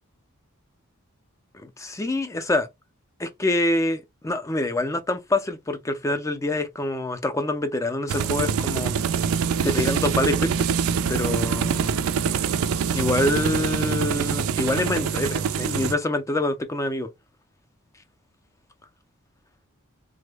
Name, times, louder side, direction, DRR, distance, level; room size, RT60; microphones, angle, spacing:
voice 1, 1.6-2.7 3.2-8.9 9.6-10.5 11.1-12.0 12.9-17.1, left 2 dB, 15° left, 0.4 m, -26 dB
sound 1, 8.1-15.9, right 6 dB, 70° right, 0.4 m, -24 dB
3.6 x 2.1 x 3.3 m
head